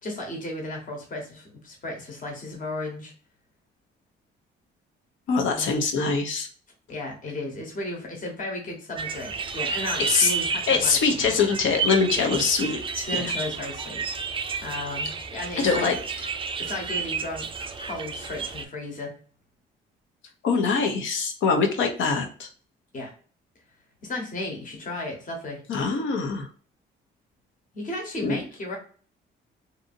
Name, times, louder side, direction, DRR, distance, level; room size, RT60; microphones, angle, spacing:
voice 1, 0.0-3.1 5.5-5.7 6.9-11.3 12.2-12.4 13.1-15.9 16.6-19.1 22.9-23.1 24.0-25.6 27.7-28.8, left 2 dB, 40° left, 1 dB, 1.1 m, -34 dB
voice 2, 5.3-6.5 10.0-10.3 10.7-13.2 15.6-15.9 20.4-22.5 25.7-26.5 28.2-28.4, left 5 dB, 75° left, 4 dB, 0.7 m, -23 dB
sound 1, 9.0-18.7, right 5 dB, 25° right, 0.3 m, -31 dB
2.7 x 2.6 x 2.5 m, 0.42 s
cardioid pair, 90°, 20 cm